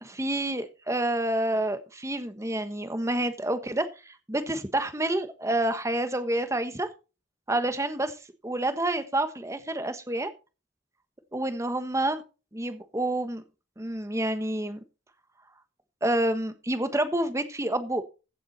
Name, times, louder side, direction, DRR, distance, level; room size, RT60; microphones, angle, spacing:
voice 1, 0.0-6.9 7.5-8.2 8.4-10.3 11.3-12.2 12.5-13.4 13.8-14.8 16.0-18.0, right 1 dB, 15° right, 1.2 m, -28 dB
15.5 x 7.2 x 4.0 m
head